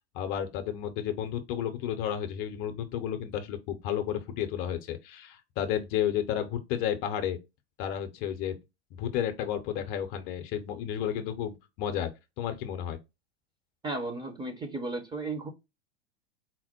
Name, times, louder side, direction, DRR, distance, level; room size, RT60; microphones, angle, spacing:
voice 1, 0.1-7.4 7.8-8.5 9.0-12.1 12.4-13.0, left 10 dB, 40° left, 0.7 m, -32 dB
voice 2, 13.8-15.5, right 2 dB, 15° right, 0.8 m, -34 dB
4.3 x 2.1 x 4.2 m
figure-of-eight pair, 85°, 32 cm